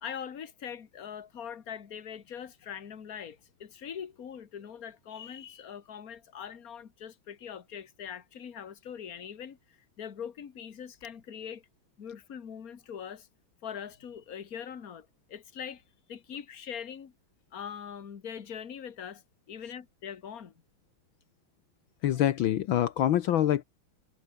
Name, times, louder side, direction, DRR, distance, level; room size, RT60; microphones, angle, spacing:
voice 1, 0.0-9.6 10.0-11.6 12.0-13.3 13.6-15.8 16.1-17.1 17.5-19.2 19.5-20.5, left 8 dB, 45° left, 2.0 m, -42 dB
voice 2, 22.0-23.6, left 11 dB, 70° left, 1.7 m, -25 dB
omnidirectional pair, 2.3 m